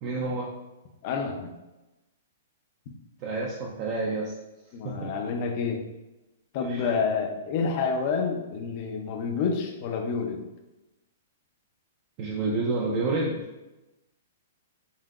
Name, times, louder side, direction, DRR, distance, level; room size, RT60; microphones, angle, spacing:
voice 1, 0.0-0.5 3.2-4.2 4.8-5.1 6.7-6.9 12.2-13.4, right 3 dB, 30° right, -3 dB, 0.5 m, -29 dB
voice 2, 1.0-1.5 4.7-5.8 6.5-10.4, left 5 dB, 35° left, 3 dB, 0.6 m, -28 dB
5.6 x 2.8 x 2.4 m, 1.0 s
hypercardioid pair, 170°, 0 cm